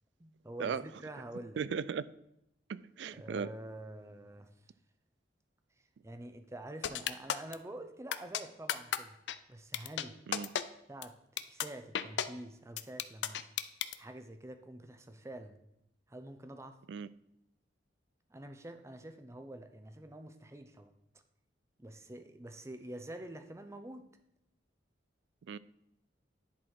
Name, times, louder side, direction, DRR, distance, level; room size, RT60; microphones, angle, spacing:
voice 1, 0.2-1.6 3.1-4.5 6.0-9.2 9.5-10.2 10.9-13.5 14.0-15.6 16.1-16.8 18.3-20.9 21.8-24.1, right 1 dB, 15° right, 0.6 m, -47 dB
voice 2, 1.6-2.1 2.7-3.5 10.3-10.5 16.9-17.1 25.5-25.6, right 6 dB, 75° right, 0.3 m, -36 dB
sound 1, 6.8-7.5 8.1-8.4 8.7-9.0 9.3-9.4 9.7-10.0 10.3-10.6 11.0-11.1 11.4-11.7 11.9-12.3 12.8-13.9, left 9 dB, 75° left, 0.4 m, -32 dB
10.5 x 4.1 x 4.6 m
head